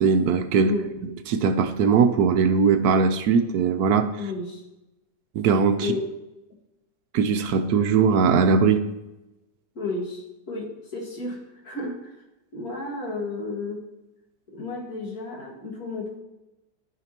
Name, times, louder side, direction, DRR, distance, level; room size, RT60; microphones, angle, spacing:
voice 1, 0.0-0.7 1.3-4.1 5.3-5.9 7.1-8.8, right 5 dB, 70° right, 9 dB, 1.1 m, -20 dB
voice 2, 0.5-1.0 4.2-4.6 5.8-6.1 9.8-12.1 12.5-13.9 14.5-16.2, left 3 dB, 60° left, -1 dB, 2.3 m, -32 dB
13.5 x 5.9 x 2.9 m, 0.96 s
omnidirectional pair, 1.8 m